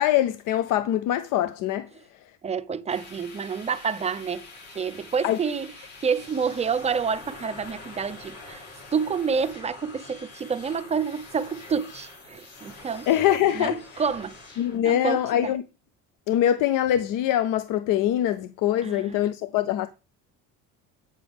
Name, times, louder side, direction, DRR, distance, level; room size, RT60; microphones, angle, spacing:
voice 1, 0.0-1.9 5.2-5.4 13.1-14.0 14.6-15.6 16.3-19.9, left 12 dB, 65° left, 0.6 m, -23 dB
voice 2, 2.4-4.4 4.7-5.7 6.0-8.6 8.9-13.1 13.5-14.3 14.8-15.5 18.8-19.2, right 6 dB, 20° right, 0.5 m, -28 dB
sound 1, 2.9-14.8, left 3 dB, 45° left, 4.2 m, -45 dB
8.8 x 6.7 x 3.5 m
cardioid pair, 130°, 34 cm